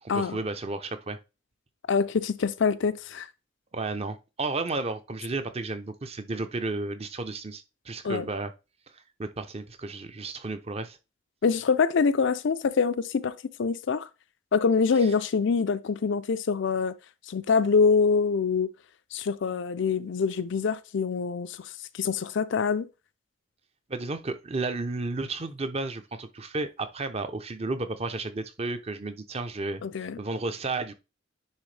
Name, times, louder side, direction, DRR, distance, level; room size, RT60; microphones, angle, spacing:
voice 1, 0.0-1.2 3.7-8.5 8.9-11.0 15.0-15.1 23.9-30.9, right 3 dB, 30° right, 0.6 m, -33 dB
voice 2, 1.9-3.3 8.0-8.2 11.4-14.1 14.5-16.9 17.3-18.7 19.1-21.6 22.0-22.9 29.8-30.2, left 5 dB, 60° left, 0.4 m, -25 dB
9.7 x 3.6 x 3.3 m
head